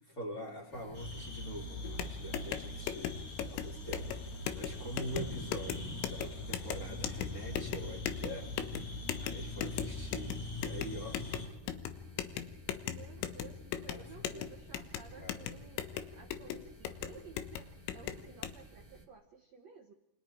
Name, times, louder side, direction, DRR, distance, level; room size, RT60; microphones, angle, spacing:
voice 1, 0.0-11.2 13.9-14.0 14.3-14.5 15.2-15.4, right 1 dB, 20° left, -2 dB, 3.3 m, -45 dB
sound 1, 0.7-19.1, equal, 20° right, 1.3 m, -53 dB
sound 2, 0.9-11.5, left 1 dB, 50° left, 4.3 m, -42 dB
sound 3, 1.8-18.5, left 10 dB, 80° left, 3.5 m, -40 dB
voice 2, 12.8-15.8 16.1-19.9, right 5 dB, 70° right, 2 dB, 1.6 m, -55 dB
28.0 x 26.0 x 4.6 m, 0.94 s
omnidirectional pair, 5.2 m